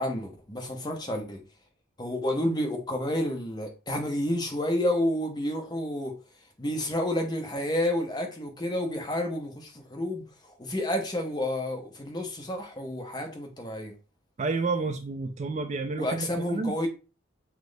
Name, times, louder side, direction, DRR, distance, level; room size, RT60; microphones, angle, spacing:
voice 1, 0.0-1.4 2.0-6.1 6.6-10.3 10.6-13.9 16.0-16.9, left 1 dB, 20° left, 0.7 m, -30 dB
voice 2, 14.4-16.8, right 3 dB, 35° right, 0.3 m, -30 dB
5.8 x 2.0 x 3.3 m
head